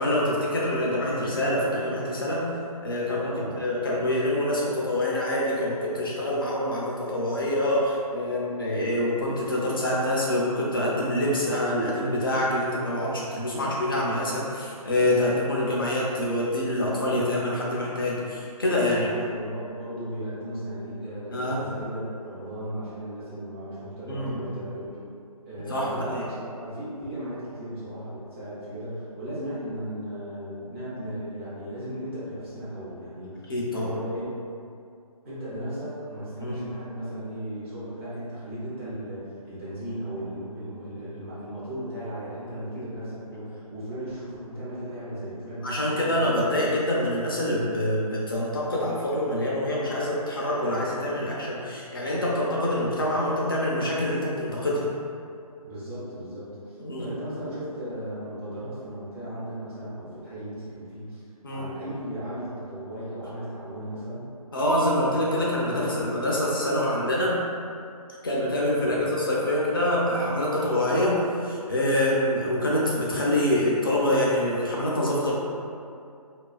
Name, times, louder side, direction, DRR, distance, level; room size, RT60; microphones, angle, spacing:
voice 1, 0.0-2.5 2.8-3.3 3.6-19.1 21.3-21.6 24.1-24.5 25.6-26.2 33.5-33.9 36.4-36.6 42.8-43.1 45.6-54.9 56.8-57.1 61.4-61.7 64.5-67.4 68.2-75.3, left 1 dB, 35° left, -5 dB, 0.4 m, -26 dB
voice 2, 3.2-3.6 15.2-15.7 18.9-24.9 25.5-34.3 35.2-46.2 55.6-61.2 61.5-64.3 68.8-69.0, equal, 20° right, -11 dB, 0.6 m, -36 dB
2.3 x 2.3 x 2.3 m, 2.4 s
figure-of-eight pair, 155°, 20 cm